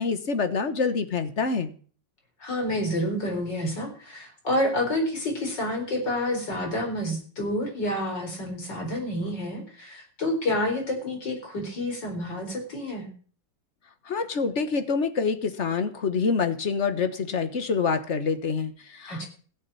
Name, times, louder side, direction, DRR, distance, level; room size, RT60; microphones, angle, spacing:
voice 1, 0.0-1.7 14.0-19.2, left 5 dB, 40° left, 10 dB, 1.5 m, -26 dB
voice 2, 2.4-13.1 19.1-19.3, left 1 dB, 75° left, 3 dB, 5.1 m, -29 dB
16.5 x 7.3 x 8.5 m, 0.43 s
omnidirectional pair, 1.9 m